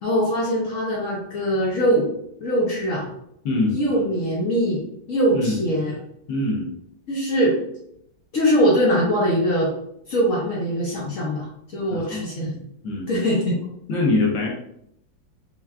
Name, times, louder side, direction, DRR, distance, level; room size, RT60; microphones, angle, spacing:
voice 1, 0.0-2.1 2.4-3.1 3.7-6.0 7.1-7.6 8.3-9.7 10.1-11.5 11.7-12.6 13.1-13.6, equal, 55° left, -4 dB, 0.9 m, -22 dB
voice 2, 3.4-3.8 5.3-5.6 6.3-6.7 11.9-12.3 12.8-13.1 13.9-14.5, left 2 dB, 70° left, -2 dB, 1.7 m, -23 dB
5.7 x 2.3 x 2.4 m, 0.74 s
omnidirectional pair, 2.2 m